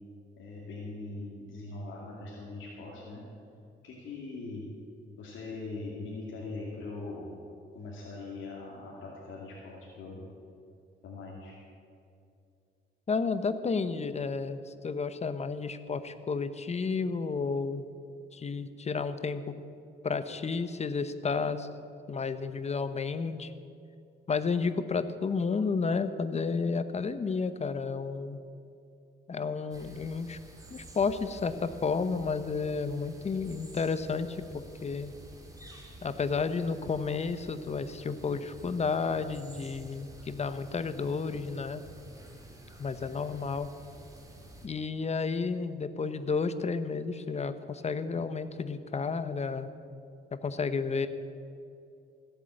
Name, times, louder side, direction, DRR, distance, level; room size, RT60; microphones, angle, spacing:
voice 1, 0.4-3.2 3.8-4.6 5.2-7.3 7.7-10.2 11.0-11.6, left 3 dB, 75° left, -4 dB, 2.6 m, -41 dB
voice 2, 13.1-17.8 18.3-19.6 20.0-21.7 22.1-23.5 24.3-28.4 29.3-30.4 30.7-35.1 36.0-41.8 42.8-43.7 44.6-49.7 50.3-51.1, left 4 dB, 35° left, 12 dB, 0.9 m, -31 dB
sound 1, 29.7-44.7, right 1 dB, 15° right, 2.5 m, -50 dB
16.5 x 8.3 x 7.8 m, 2.5 s
cardioid pair, 90°, 20 cm